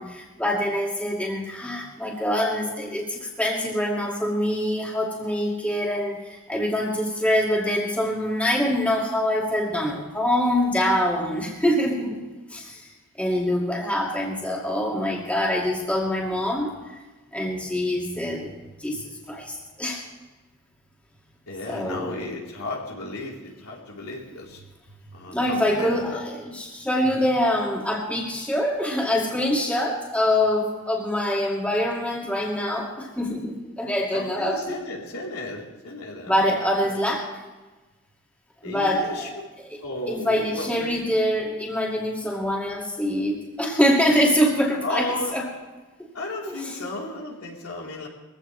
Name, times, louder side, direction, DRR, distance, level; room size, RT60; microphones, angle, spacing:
voice 1, 0.0-12.2 12.5-12.9 13.2-16.7 17.3-20.0 21.7-22.3 25.3-34.8 36.2-37.3 38.6-39.8 40.1-45.5 46.0-46.1 46.5-46.8, left 1 dB, 5° left, -3 dB, 2.4 m, -25 dB
voice 2, 21.5-24.6 25.1-26.2 27.1-27.3 34.1-36.6 38.6-39.3 39.8-40.9 44.8-45.3 46.1-48.1, left 2 dB, 80° left, -3 dB, 4.0 m, -34 dB
22.0 x 16.0 x 3.4 m, 1.2 s
head